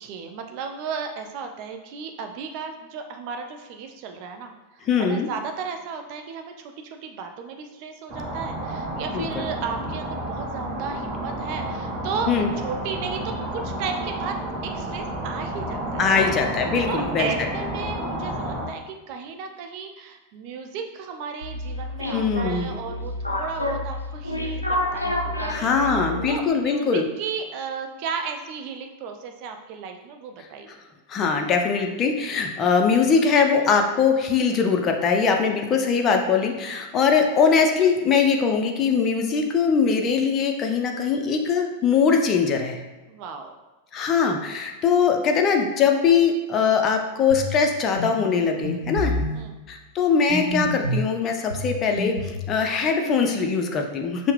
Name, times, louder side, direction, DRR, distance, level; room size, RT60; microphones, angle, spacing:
voice 1, 0.0-4.5 4.8-12.3 12.6-14.4 14.6-16.3 16.9-30.7 36.7-36.8 43.1-43.6 44.1-44.2 49.0-49.6, right 5 dB, 45° right, 5 dB, 0.4 m, -34 dB
voice 2, 4.8-5.3 9.1-9.5 12.3-12.5 16.0-17.5 22.1-22.7 25.5-27.1 30.7-30.8 31.1-42.8 43.9-49.1 49.7-54.3, left 5 dB, 30° left, 3 dB, 0.4 m, -21 dB
sound 1, 8.1-18.7, right 1 dB, 30° right, 0.8 m, -31 dB
sound 2, 21.4-26.5, left 1 dB, 85° left, 0.4 m, -29 dB
sound 3, 47.3-47.6 48.0-48.1 48.6-49.4 50.3-51.0 51.5-52.4, left 1 dB, 85° right, 0.6 m, -27 dB
5.5 x 2.0 x 3.2 m, 1.2 s
figure-of-eight pair, 90°, 0 cm